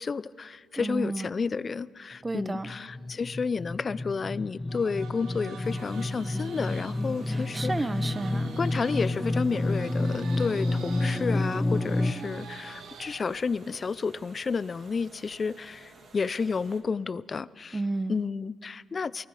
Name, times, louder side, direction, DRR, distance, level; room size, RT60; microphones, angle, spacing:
voice 1, 0.0-7.7 8.6-17.8 18.1-19.3, left 5 dB, 35° left, 19 dB, 0.4 m, -31 dB
voice 2, 0.8-1.3 2.2-2.7 7.3-8.6 17.7-18.2, right 2 dB, 20° right, 13 dB, 0.8 m, -32 dB
sound 1, 2.3-12.1, left 2 dB, 15° left, 1.3 m, -30 dB
sound 2, 4.7-13.4, right 5 dB, 80° right, 1.9 m, -47 dB
sound 3, 5.6-16.8, right 4 dB, 50° right, 2.6 m, -53 dB
28.5 x 19.0 x 4.9 m, 2.2 s
cardioid pair, 90°, 0 cm